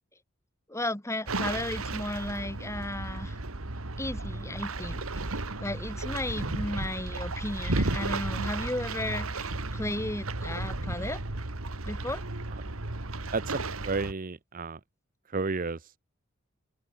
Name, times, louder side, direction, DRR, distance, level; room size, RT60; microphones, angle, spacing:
voice 1, 0.7-3.4 4.0-11.2 11.8-12.2, left 1 dB, 15° left, 3.4 m, -34 dB
sound 1, 1.3-14.1, right 2 dB, 90° right, 2.1 m, -34 dB
voice 2, 13.3-14.8 15.3-15.8, right 3 dB, 40° right, 0.8 m, -32 dB
open air
head